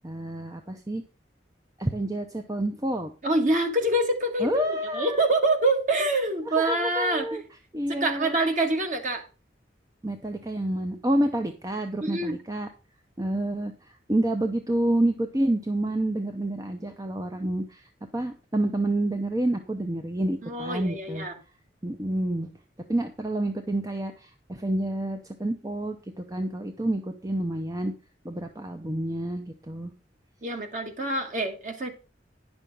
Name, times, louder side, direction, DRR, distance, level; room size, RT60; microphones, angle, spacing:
voice 1, 0.0-1.0 1.8-3.1 4.4-5.2 6.5-7.4 7.7-8.3 10.0-12.7 13.2-13.7 14.1-21.3 21.8-22.5 22.9-27.9 28.2-29.9, right 1 dB, 20° right, 5 dB, 0.7 m, -28 dB
voice 2, 3.2-4.6 4.9-7.4 7.9-9.2 12.0-12.4 20.4-21.3 30.4-31.9, right 1 dB, 45° right, 5 dB, 1.8 m, -25 dB
10.0 x 6.2 x 5.3 m, 0.34 s
head